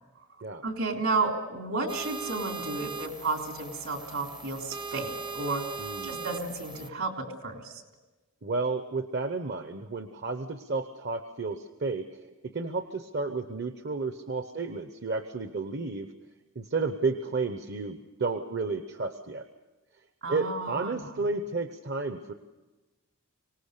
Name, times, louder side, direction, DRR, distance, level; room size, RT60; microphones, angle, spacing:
voice 1, 0.6-5.6 6.0-7.1 7.4-7.8 20.2-21.1, right 3 dB, 70° right, 2 dB, 3.6 m, -32 dB
sound 1, 1.9-6.9, right 4 dB, 20° right, 0.6 m, -39 dB
voice 2, 5.8-6.3 8.4-16.1 16.5-19.4 20.3-22.3, right 3 dB, 50° right, 8 dB, 0.9 m, -32 dB
25.0 x 19.0 x 6.7 m, 1.2 s
head